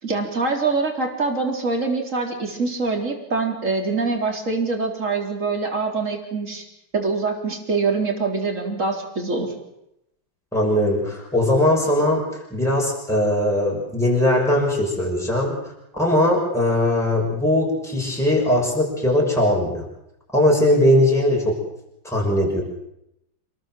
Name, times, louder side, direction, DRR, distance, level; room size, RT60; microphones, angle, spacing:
voice 1, 0.0-6.6 6.9-9.5, right 4 dB, 40° right, 2 dB, 4.4 m, -24 dB
voice 2, 10.5-12.2 12.5-15.5 15.9-19.8 20.3-21.6 22.1-22.6, left 1 dB, ahead, -2 dB, 6.3 m, -20 dB
28.5 x 19.5 x 7.8 m, 0.84 s
omnidirectional pair, 2.0 m